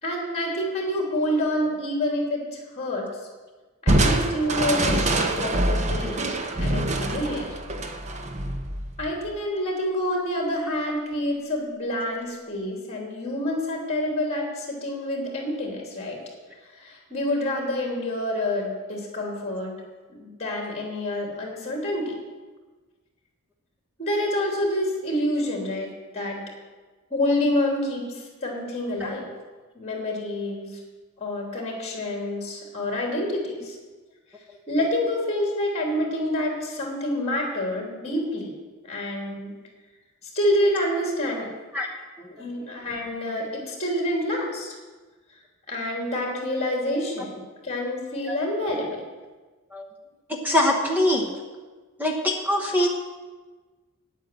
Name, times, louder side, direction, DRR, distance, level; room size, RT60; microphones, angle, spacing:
voice 1, 0.0-2.4 2.7-3.1 3.8-6.3 6.6-7.5 9.0-16.2 16.8-19.7 20.1-22.1 24.0-26.4 27.1-28.0 28.4-29.2 29.7-30.8 31.2-33.8 34.7-38.5 38.9-39.5 40.3-41.5 42.4-44.7 45.7-48.9, left 1 dB, 30° left, 0 dB, 3.0 m, -27 dB
Crushing, 3.9-9.3, right 1 dB, 30° right, 0.9 m, -25 dB
voice 2, 50.3-51.3 52.0-52.9, left 1 dB, 10° right, 1 dB, 1.2 m, -23 dB
9.3 x 9.1 x 7.8 m, 1.3 s
head